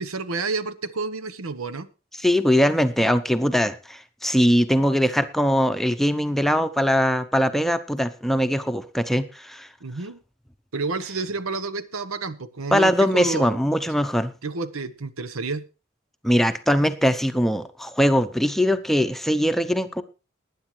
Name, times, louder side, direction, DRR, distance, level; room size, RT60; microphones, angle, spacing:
voice 1, 0.0-1.9 9.8-10.2 10.7-13.6 14.4-15.6, right 3 dB, 90° right, 13 dB, 1.0 m, -30 dB
voice 2, 2.2-9.7 12.7-14.3 16.2-20.0, equal, ahead, 9 dB, 0.7 m, -21 dB
19.5 x 9.9 x 3.2 m, 0.32 s
head